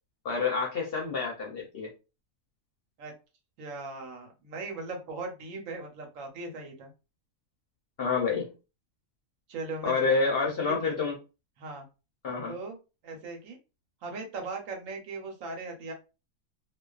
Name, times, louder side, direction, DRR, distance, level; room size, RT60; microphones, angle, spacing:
voice 1, 0.2-1.9 8.0-8.5 9.8-11.2 12.2-12.5, left 4 dB, 55° left, -1 dB, 0.7 m, -28 dB
voice 2, 3.6-6.9 9.5-10.3 10.6-10.9 11.6-11.9 12.5-12.8 13.0-13.6 14.0-15.9, right 3 dB, 70° right, 2 dB, 1.1 m, -39 dB
2.4 x 2.3 x 2.3 m, 0.30 s
omnidirectional pair, 1.4 m